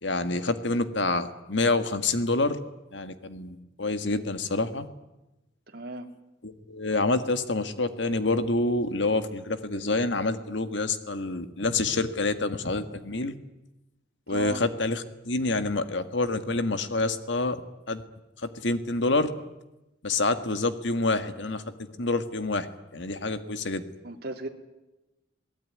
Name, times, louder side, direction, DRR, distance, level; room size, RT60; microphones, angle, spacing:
voice 1, 0.0-2.6 2.9-4.9 6.4-13.3 14.3-17.6 17.9-18.0 18.4-19.3 20.0-21.6 22.0-23.8, left 2 dB, 70° left, 9 dB, 1.7 m, -27 dB
voice 2, 5.7-6.1 14.3-14.6 24.0-24.5, right 3 dB, 50° right, 3 dB, 2.5 m, -35 dB
27.0 x 18.5 x 9.6 m, 1.0 s
head